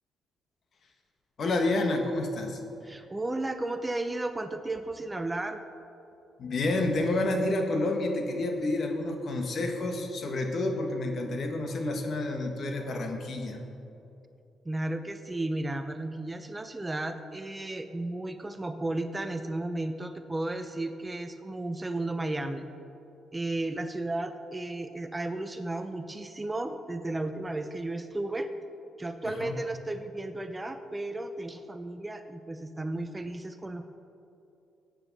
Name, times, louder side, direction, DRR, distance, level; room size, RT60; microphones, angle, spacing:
voice 1, 1.4-2.6 6.4-13.6 29.2-29.6, left 2 dB, 55° left, 4 dB, 1.5 m, -29 dB
voice 2, 2.9-5.6 14.6-22.7 23.3-28.5 29.0-33.9, right 2 dB, 15° right, 9 dB, 0.6 m, -34 dB
14.5 x 8.9 x 4.1 m, 2.8 s
cardioid pair, 90°, 0 cm